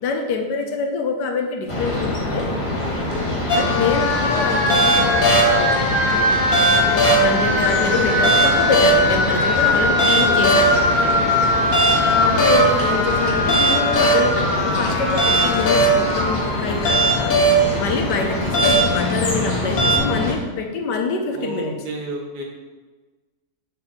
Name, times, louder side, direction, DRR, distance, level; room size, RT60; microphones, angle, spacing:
voice 1, 0.0-2.5 3.5-5.8 6.7-11.3 12.2-17.3 17.8-21.8, left 4 dB, 90° left, 4 dB, 1.5 m, -25 dB
sound 1, 1.7-20.3, left 1 dB, 20° left, 1.2 m, -25 dB
voice 2, 2.8-3.3 9.9-10.4 10.9-11.3 12.0-12.3 17.5-18.0 21.3-22.4, right 1 dB, 75° right, -1 dB, 1.9 m, -33 dB
sound 2, 3.5-20.0, equal, 55° left, 1.6 m, -19 dB
6.8 x 5.4 x 4.5 m, 1.3 s
omnidirectional pair, 1.8 m